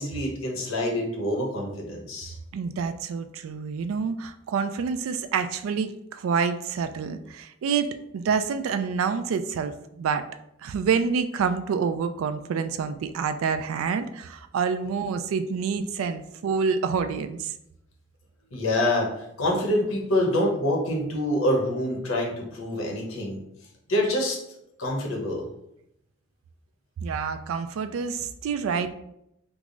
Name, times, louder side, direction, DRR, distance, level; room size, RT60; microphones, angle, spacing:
voice 1, 0.0-2.4 18.5-23.4 23.9-24.4 24.8-25.5, left 1 dB, 90° left, 0 dB, 0.9 m, -26 dB
voice 2, 2.5-10.2 10.6-17.5 27.0-28.9, right 6 dB, 80° right, 11 dB, 0.3 m, -27 dB
3.4 x 2.0 x 3.8 m, 0.79 s
head